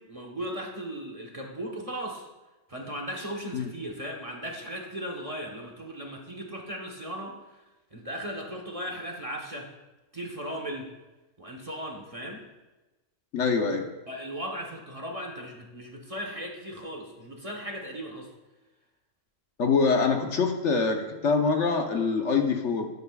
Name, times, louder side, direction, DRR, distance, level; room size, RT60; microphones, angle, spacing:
voice 1, 0.0-2.3 2.7-7.6 7.9-9.7 10.1-10.9 11.4-12.4 14.1-18.3, equal, 30° right, 0 dB, 1.2 m, -37 dB
voice 2, 13.3-13.8 19.6-22.9, left 4 dB, 65° left, 3 dB, 1.3 m, -24 dB
12.5 x 11.0 x 2.4 m, 1.1 s
omnidirectional pair, 1.3 m